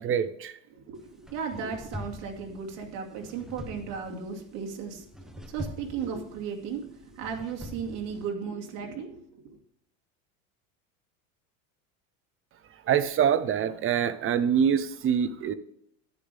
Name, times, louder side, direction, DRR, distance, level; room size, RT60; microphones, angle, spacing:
voice 1, 0.0-0.6 12.7-15.5, right 8 dB, 30° right, 14 dB, 0.8 m, -25 dB
voice 2, 0.7-9.6, right 6 dB, 65° right, 1 dB, 2.5 m, -36 dB
sound 1, 1.0-8.3, left 1 dB, ahead, 0.8 m, -44 dB
10.5 x 7.8 x 3.5 m, 0.71 s
supercardioid pair, 110°, 40 cm